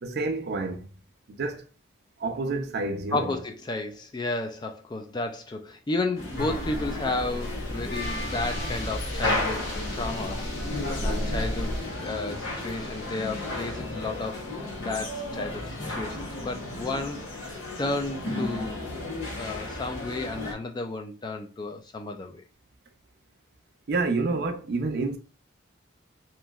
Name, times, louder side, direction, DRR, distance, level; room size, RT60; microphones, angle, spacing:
voice 1, 0.0-0.9 1.3-1.6 2.2-3.3 11.0-11.3 23.9-25.2, right 3 dB, 55° right, 0.5 m, -29 dB
voice 2, 3.1-10.4 10.7-18.9 19.4-22.4, left 2 dB, 20° left, 0.3 m, -33 dB
sound 1, 6.2-20.5, left 2 dB, 80° left, 0.9 m, -34 dB
sound 2, 6.4-11.8, equal, 45° left, 0.7 m, -33 dB
sound 3, 8.0-13.8, left 2 dB, 60° left, 1.5 m, -42 dB
3.0 x 2.5 x 2.3 m
head